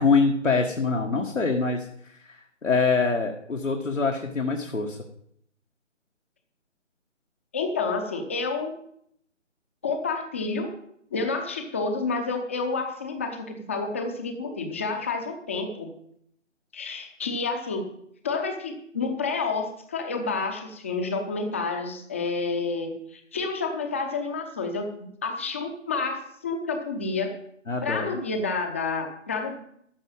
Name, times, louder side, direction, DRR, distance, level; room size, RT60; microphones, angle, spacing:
voice 1, 0.0-5.0 27.7-28.1, left 4 dB, 85° left, 2 dB, 1.7 m, -25 dB
voice 2, 7.5-8.7 9.8-10.7 11.1-15.9 16.7-17.8 18.2-27.3 27.8-29.5, left 4 dB, 10° left, 5 dB, 0.7 m, -29 dB
14.0 x 4.8 x 8.6 m, 0.70 s
figure-of-eight pair, 150°, 37 cm